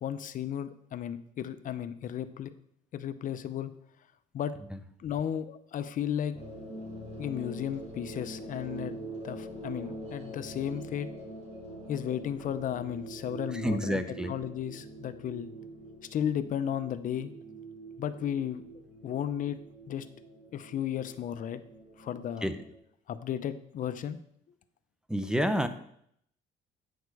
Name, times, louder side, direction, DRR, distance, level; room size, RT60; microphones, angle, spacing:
voice 1, 0.0-2.5 2.9-3.7 4.3-4.5 5.0-6.3 7.2-9.0 9.2-11.1 11.9-15.5 16.0-17.3 18.0-18.6 19.0-19.6 19.9-20.1 20.5-21.6 22.0-22.5 23.1-24.2, left 9 dB, 50° left, 12 dB, 0.6 m, -34 dB
sound 1, 6.3-22.8, right 2 dB, 40° right, 3.7 m, -44 dB
voice 2, 13.6-14.3 22.4-22.6 25.1-25.7, equal, 5° right, 10 dB, 0.7 m, -28 dB
9.3 x 6.5 x 4.7 m, 0.71 s
cardioid pair, 110°, 17 cm